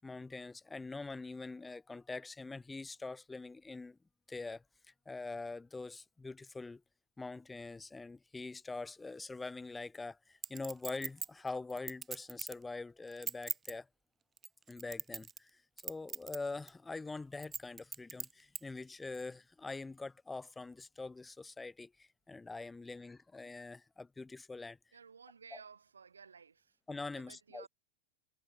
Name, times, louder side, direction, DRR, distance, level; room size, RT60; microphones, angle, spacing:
voice 1, 0.0-4.0 4.3-4.6 5.0-6.8 7.2-13.9 14.7-24.8 25.5-25.6 26.9-27.6, left 3 dB, 10° left, 6.6 m, -44 dB
Chink clink, 10.4-12.6 13.1-13.7 14.4-15.5 15.8-16.4 16.7-16.8 17.4-18.6 19.1-19.2, right 6 dB, 20° right, 0.5 m, -40 dB
voice 2, 24.9-26.8 27.2-27.7, right 6 dB, 75° right, 5.6 m, -55 dB
figure-of-eight pair, 90°, 0 cm